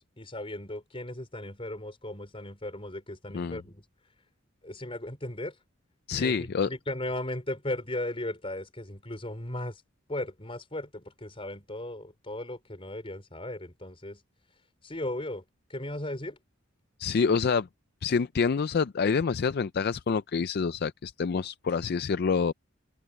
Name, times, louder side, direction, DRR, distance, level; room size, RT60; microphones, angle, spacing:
voice 1, 0.0-3.8 4.6-5.5 6.1-9.8 10.1-14.2 14.8-15.4 15.7-16.4, left 1 dB, 25° left, 5.1 m, -36 dB
voice 2, 6.1-6.7 17.0-17.7 18.0-22.5, left 5 dB, 50° left, 0.4 m, -27 dB
open air
head